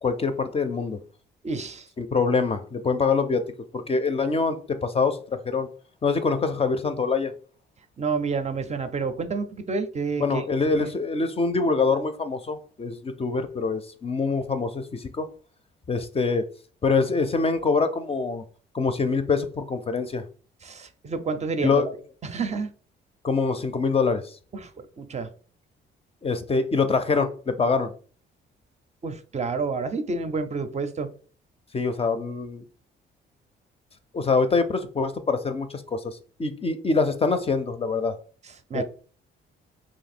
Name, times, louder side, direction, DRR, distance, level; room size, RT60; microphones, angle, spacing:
voice 1, 0.0-1.0 2.0-5.7 6.0-7.3 10.2-15.3 15.9-16.5 16.8-18.4 18.7-20.2 21.6-21.9 23.2-24.4 26.2-27.9 31.7-32.6 34.1-38.1 38.7-38.8, left 4 dB, 30° left, 0.5 m, -25 dB
voice 2, 1.4-1.9 8.0-10.4 10.8-10.9 20.6-21.8 22.2-22.7 24.5-24.7 25.0-25.3 29.0-31.1 38.7-38.8, right 4 dB, 35° right, 0.5 m, -29 dB
2.9 x 2.6 x 4.2 m
cardioid pair, 90°, 20 cm